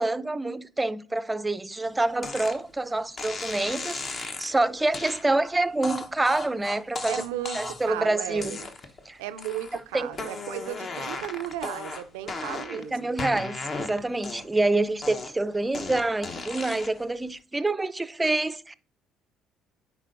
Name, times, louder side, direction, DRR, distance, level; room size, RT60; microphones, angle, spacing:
voice 1, 0.0-7.2 7.5-8.6 9.1-9.2 9.9-10.1 12.7-18.7, right 2 dB, 15° right, 0.4 m, -27 dB
sound 1, 2.2-2.6 3.2-4.5 4.9-5.2 5.8-7.9 8.4-9.0 9.4-9.8 10.1-12.8 13.2-14.6 15.0-17.0, left 3 dB, 45° left, 0.9 m, -35 dB
voice 2, 7.1-8.7 9.2-13.1, right 12 dB, 85° right, 0.4 m, -35 dB
9.7 x 4.4 x 2.5 m
supercardioid pair, 65°, 0 cm